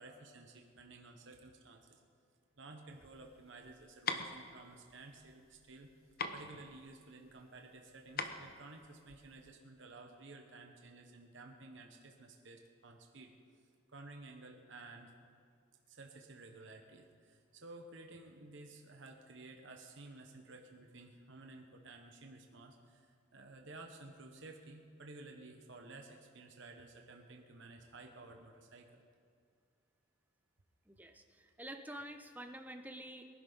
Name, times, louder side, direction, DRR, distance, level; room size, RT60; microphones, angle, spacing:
voice 1, 0.0-2.0 2.6-5.9 6.3-13.3 13.9-15.1 15.9-29.0, right 2 dB, 65° right, 2 dB, 1.2 m, -54 dB
sound 1, 2.9-9.5, left 4 dB, 50° left, 0.9 m, -43 dB
voice 2, 30.9-33.2, right 1 dB, 10° right, 6 dB, 0.8 m, -48 dB
22.5 x 11.0 x 4.0 m, 2.2 s
head